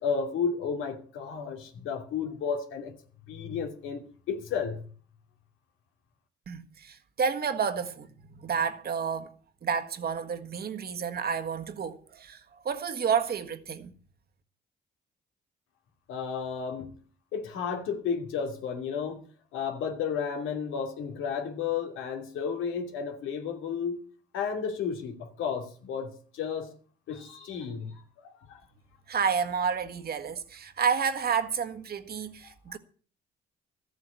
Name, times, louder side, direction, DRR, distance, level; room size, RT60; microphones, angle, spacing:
voice 1, 0.0-2.9 3.3-4.0 4.3-4.8 16.1-16.9 17.3-19.2 19.5-24.0 24.3-26.7 27.1-28.6 32.7-32.8, left 6 dB, 90° left, 2.6 m, -32 dB
voice 2, 6.5-8.1 8.4-9.3 9.6-12.4 12.6-13.9 29.1-32.8, right 6 dB, 50° right, 1.6 m, -30 dB
13.5 x 8.0 x 8.3 m
cardioid pair, 90°, 20 cm